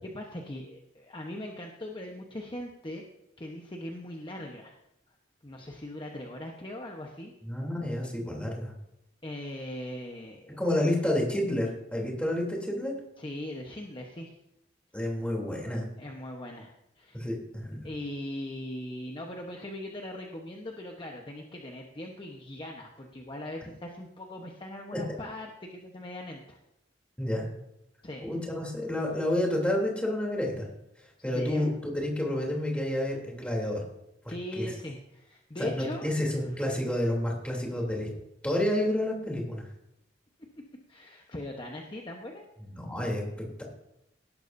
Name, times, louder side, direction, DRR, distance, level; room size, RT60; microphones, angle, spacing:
voice 1, 0.0-3.0 3.4-4.8 5.4-7.3 9.2-10.6 10.8-11.1 13.2-14.3 16.0-17.2 17.8-26.6 28.0-28.2 31.3-31.8 34.3-36.1 36.4-36.5 37.9-38.2 40.9-42.4, left 1 dB, 30° left, 1 dB, 1.0 m, -40 dB
voice 2, 7.4-8.7 10.6-12.9 14.9-15.9 17.1-17.9 27.2-27.6 28.2-30.7 31.2-33.8 34.2-34.7 35.6-38.1 38.4-39.6 42.6-43.2, left 1 dB, 5° left, -1 dB, 3.2 m, -29 dB
18.0 x 12.0 x 2.7 m, 0.85 s
head